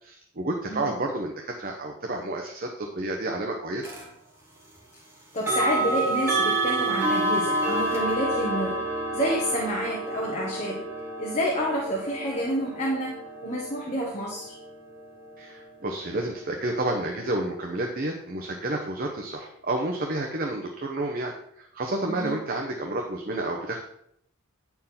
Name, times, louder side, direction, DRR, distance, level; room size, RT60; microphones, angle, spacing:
voice 1, 0.0-3.9 15.4-23.8, right 2 dB, 40° right, 2 dB, 0.8 m, -30 dB
sound 1, 3.8-4.1 5.4-16.2, right 2 dB, 10° right, 1.5 m, -29 dB
voice 2, 5.3-8.8 9.1-10.8 11.2-14.6 22.1-22.4, equal, 30° left, -3 dB, 1.4 m, -29 dB
9.5 x 4.6 x 5.6 m, 0.73 s
head